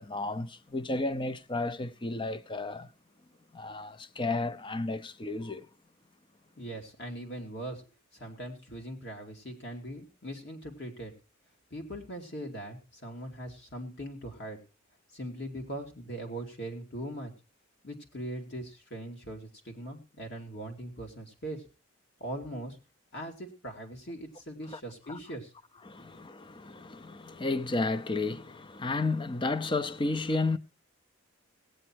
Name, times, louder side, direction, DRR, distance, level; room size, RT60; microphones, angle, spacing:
voice 1, 0.0-2.9 3.5-5.7 24.7-24.8 25.1-25.2 25.8-30.6, left 3 dB, 25° left, 0.6 m, -32 dB
voice 2, 6.6-7.8 8.1-11.1 11.7-14.6 15.1-17.3 17.8-21.6 22.2-22.8 23.1-25.5, right 1 dB, 55° left, 2.6 m, -40 dB
18.0 x 8.8 x 4.6 m
head